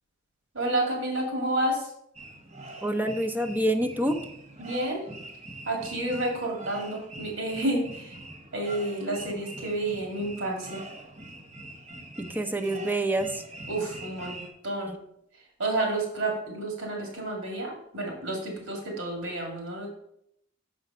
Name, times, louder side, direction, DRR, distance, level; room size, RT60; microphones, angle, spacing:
voice 1, 0.5-1.9 4.6-5.0 5.6-8.2 8.5-10.8 13.7-15.0 15.6-19.9, right 1 dB, 80° right, 0 dB, 2.3 m, -30 dB
sound 1, 2.2-14.5, right 2 dB, 35° right, 1.1 m, -43 dB
voice 2, 2.8-4.2 12.2-13.4, right 1 dB, 10° right, 5 dB, 0.6 m, -27 dB
6.5 x 5.0 x 5.4 m, 0.75 s
head